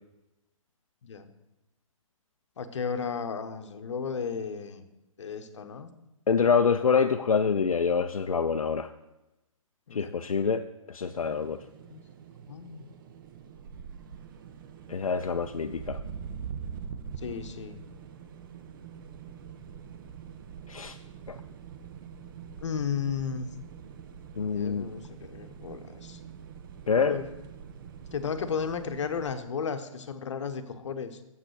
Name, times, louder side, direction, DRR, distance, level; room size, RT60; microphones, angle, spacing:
voice 1, 2.6-4.9 5.2-5.9 9.9-10.1 11.9-12.0 12.5-12.9 17.2-17.8 22.6-23.5 24.5-26.2 27.1-27.3 28.1-31.2, left 6 dB, 60° left, 9 dB, 0.9 m, -34 dB
voice 2, 6.3-8.9 9.9-11.6 14.9-16.0 20.7-21.0 21.3-21.4 24.4-24.9 26.9-27.2, left 5 dB, 80° left, 7 dB, 0.4 m, -26 dB
sound 1, 11.0-29.4, right 7 dB, 40° right, 0.6 m, -44 dB
7.3 x 6.0 x 6.5 m, 0.95 s
figure-of-eight pair, 130°, 18 cm